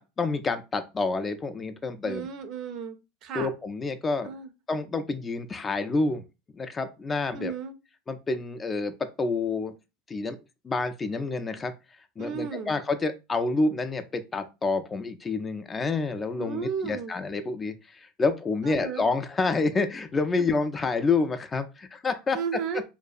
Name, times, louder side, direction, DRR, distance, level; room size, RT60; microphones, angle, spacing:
voice 1, 0.0-2.3 3.3-4.3 4.7-6.2 6.5-7.5 8.1-9.7 10.1-10.4 10.6-11.7 12.2-22.4, left 3 dB, 20° left, 0.3 m, -28 dB
voice 2, 2.0-2.9 3.2-3.5 4.2-4.5 7.3-7.7 12.2-12.7 16.4-17.1 18.6-19.1 22.3-22.8, right 6 dB, 50° right, 0.5 m, -33 dB
2.6 x 2.2 x 2.4 m
supercardioid pair, 115°, 0 cm